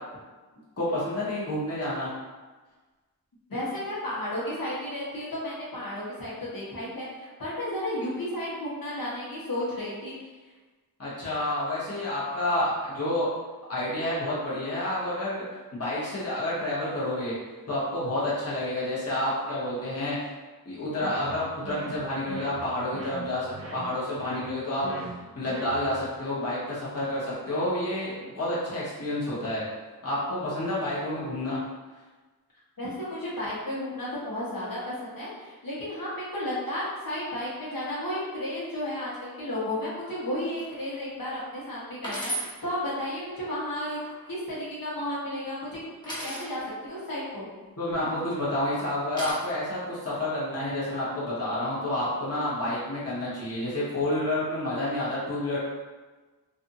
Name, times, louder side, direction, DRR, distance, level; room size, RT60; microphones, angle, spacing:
voice 1, 0.8-2.1 11.0-13.3 13.7-15.5 15.7-17.3 17.7-20.3 20.6-24.9 25.3-29.6 30.0-31.6 47.8-55.6, left 1 dB, 40° left, -9 dB, 1.0 m, -29 dB
voice 2, 3.5-10.1 32.8-44.0 44.3-45.8 46.0-47.5, left 1 dB, 70° left, -7 dB, 1.1 m, -33 dB
sound 1, 21.0-26.1, right 3 dB, 40° right, 0.5 m, -41 dB
sound 2, 40.6-40.9 41.4-41.5 42.0-42.5 43.7-44.3 46.0-46.5 47.9-48.4 49.2-49.3, right 1 dB, 10° left, 0.9 m, -35 dB
2.6 x 2.5 x 2.6 m, 1.3 s
wide cardioid pair, 40°, 36 cm